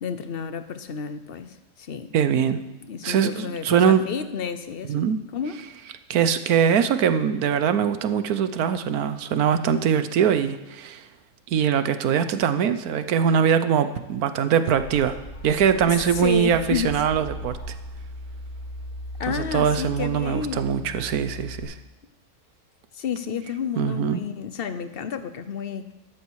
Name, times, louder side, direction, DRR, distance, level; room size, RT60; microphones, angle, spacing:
voice 1, 0.0-2.1 2.9-5.1 5.3-5.6 15.9-17.0 19.2-20.9 22.9-25.9, left 7 dB, 45° left, 11 dB, 0.9 m, -31 dB
voice 2, 2.1-2.6 3.0-4.0 4.9-5.2 6.1-11.1 11.5-15.1 15.4-17.6 19.3-21.7 23.8-24.2, right 8 dB, 75° right, 11 dB, 1.3 m, -22 dB
sound 1, 14.7-21.6, equal, 85° left, 5.6 m, -38 dB
14.0 x 12.0 x 4.8 m, 1.0 s
omnidirectional pair, 1.6 m